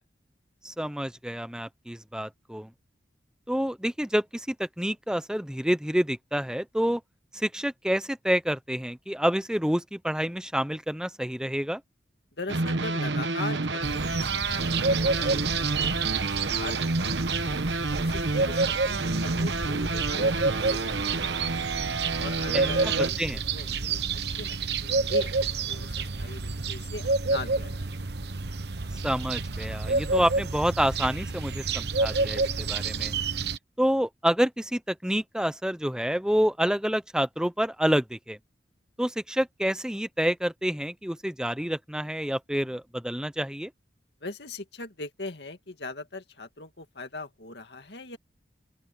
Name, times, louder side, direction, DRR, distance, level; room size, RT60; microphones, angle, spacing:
voice 1, 0.6-2.7 3.5-7.0 7.3-11.8 22.5-23.4 29.0-33.1 33.8-38.4 39.0-43.7, equal, 5° right, 0.8 m, -28 dB
voice 2, 12.4-17.6 18.0-21.8 22.2-25.3 25.7-27.9 44.2-48.2, left 2 dB, 70° left, 2.3 m, -40 dB
sound 1, 12.5-23.1, right 3 dB, 85° right, 1.3 m, -29 dB
sound 2, 13.8-33.6, right 4 dB, 65° right, 1.1 m, -29 dB
open air
head